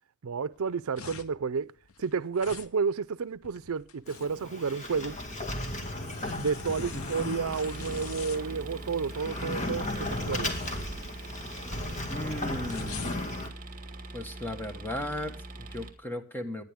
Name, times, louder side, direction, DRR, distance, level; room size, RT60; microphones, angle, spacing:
voice 1, 0.2-1.7 2.0-5.2 6.4-10.5, right 5 dB, 80° right, 0.5 m, -31 dB
sound 1, 0.5-14.1, left 6 dB, 75° left, 1.0 m, -46 dB
Sliding door, 4.1-13.5, left 1 dB, 35° left, 2.1 m, -36 dB
sound 2, 7.5-15.9, right 2 dB, 40° right, 2.1 m, -43 dB
voice 2, 12.1-13.3 14.1-16.6, left 1 dB, 10° left, 1.5 m, -36 dB
19.5 x 10.5 x 3.6 m
head